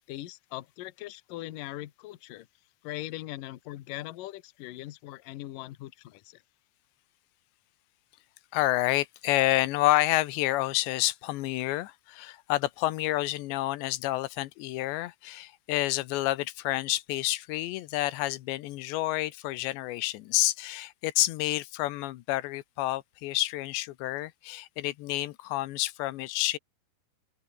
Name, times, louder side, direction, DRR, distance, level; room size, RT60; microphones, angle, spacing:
voice 1, 0.0-2.5 2.8-6.4, left 16 dB, 65° left, 2.3 m, -40 dB
voice 2, 8.5-26.6, left 17 dB, 85° left, 3.2 m, -29 dB
open air
omnidirectional pair, 5.0 m